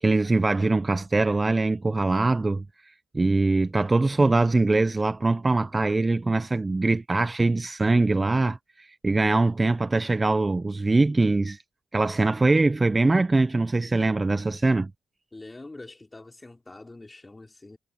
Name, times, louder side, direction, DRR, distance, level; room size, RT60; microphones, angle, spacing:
voice 1, 0.0-2.6 3.1-11.6 11.9-14.9, right 3 dB, 20° right, 0.9 m, -22 dB
voice 2, 15.3-17.8, left 2 dB, 15° left, 3.7 m, -44 dB
cardioid pair, 90°, 0 cm